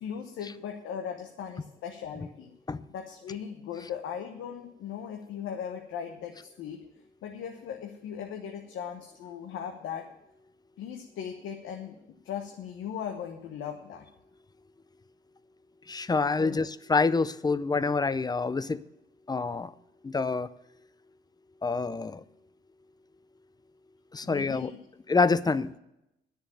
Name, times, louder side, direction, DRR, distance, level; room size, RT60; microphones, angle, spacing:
voice 1, 0.0-2.5 2.9-6.8 7.2-10.1 10.8-12.0 12.2-14.0 16.4-16.6 24.2-24.8, left 8 dB, 80° left, 3 dB, 1.1 m, -38 dB
voice 2, 15.9-18.8 19.3-19.7 20.0-20.5 21.6-22.2 24.1-24.7 25.1-25.8, left 4 dB, 20° left, 16 dB, 0.5 m, -27 dB
10.5 x 6.9 x 9.1 m, 0.86 s
cardioid pair, 90°, 20 cm